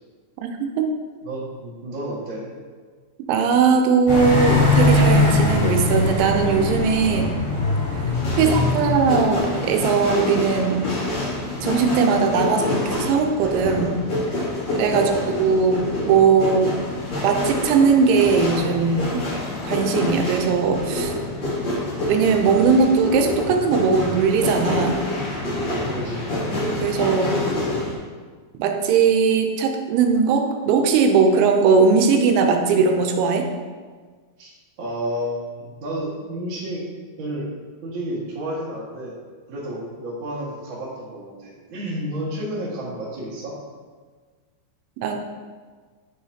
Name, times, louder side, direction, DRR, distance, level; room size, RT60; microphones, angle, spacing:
voice 1, 1.2-2.5 8.3-8.6 14.9-15.3 18.8-19.2 25.7-26.3 27.1-27.3 34.4-36.9 37.2-37.5 37.8-39.2 39.5-43.6, right 1 dB, 55° right, -6 dB, 1.3 m, -31 dB
voice 2, 3.3-7.3 8.4-10.8 11.6-14.0 14.8-15.1 15.4-16.7 17.2-19.2 19.6-21.1 22.1-25.0 26.8-27.3 28.6-33.5 45.0-45.2, right 5 dB, 85° right, 4 dB, 3.1 m, -19 dB
sound 1, 4.1-9.4, left 2 dB, 65° left, 4.1 m, -20 dB
sound 2, 8.1-28.0, left 2 dB, 45° left, 2.0 m, -27 dB
8.2 x 6.7 x 2.8 m, 1.5 s
omnidirectional pair, 5.3 m